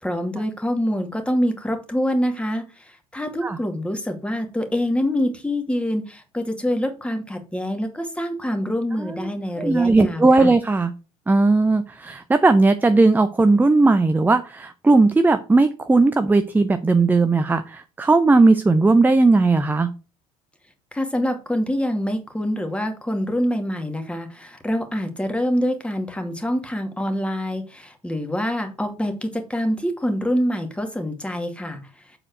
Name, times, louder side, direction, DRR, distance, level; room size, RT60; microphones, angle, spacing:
voice 1, 0.0-10.5 20.9-31.8, equal, 5° left, 5 dB, 2.2 m, -25 dB
voice 2, 9.0-9.3 9.6-10.9 11.3-19.9, right 3 dB, 10° right, 10 dB, 0.6 m, -17 dB
7.4 x 4.7 x 6.5 m, 0.33 s
figure-of-eight pair, 65°, 19 cm